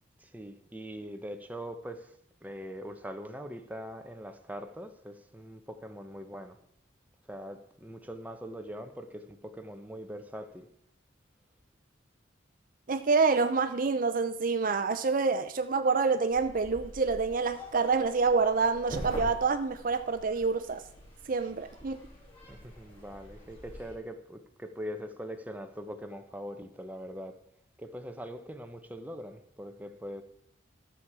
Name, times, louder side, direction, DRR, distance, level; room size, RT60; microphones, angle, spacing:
voice 1, 0.2-2.1 2.4-6.6 7.3-10.7 22.5-27.4 27.8-30.2, equal, 10° right, 0.8 m, -42 dB
voice 2, 12.9-20.8 21.3-22.0, right 4 dB, 45° right, 0.5 m, -27 dB
sound 1, 16.3-23.9, equal, 30° left, 4.0 m, -45 dB
13.0 x 7.5 x 4.8 m
head